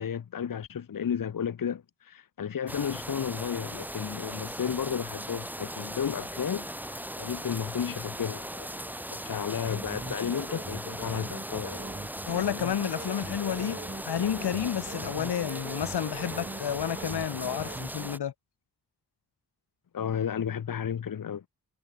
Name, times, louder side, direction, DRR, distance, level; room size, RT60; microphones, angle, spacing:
voice 1, 0.0-8.7 9.1-11.8 19.9-21.4, left 8 dB, 50° left, 1.1 m, -33 dB
sound 1, 2.7-18.2, right 1 dB, 5° right, 1.9 m, -39 dB
sound 2, 9.6-18.1, right 2 dB, 25° right, 7.0 m, -41 dB
voice 2, 12.3-13.8 14.1-18.3, left 9 dB, 70° left, 1.5 m, -30 dB
supercardioid pair, 45°, 41 cm